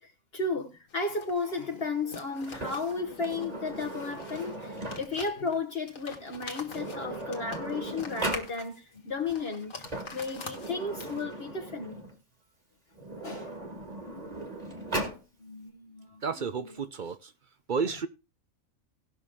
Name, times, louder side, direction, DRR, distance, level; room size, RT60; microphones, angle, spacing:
voice 1, 0.0-9.7 10.1-12.0 13.2-13.5 15.4-16.2, left 3 dB, 50° left, 1.3 m, -34 dB
sound 1, 0.9-11.4, left 4 dB, 70° left, 2.0 m, -46 dB
Sliding door, 2.5-5.3 6.3-6.4 6.6-8.5 9.6-12.2 12.9-15.2, right 2 dB, 30° right, 1.9 m, -38 dB
voice 2, 16.2-17.3 17.7-18.1, right 5 dB, 50° right, 0.6 m, -31 dB
18.0 x 6.3 x 3.5 m
omnidirectional pair, 1.4 m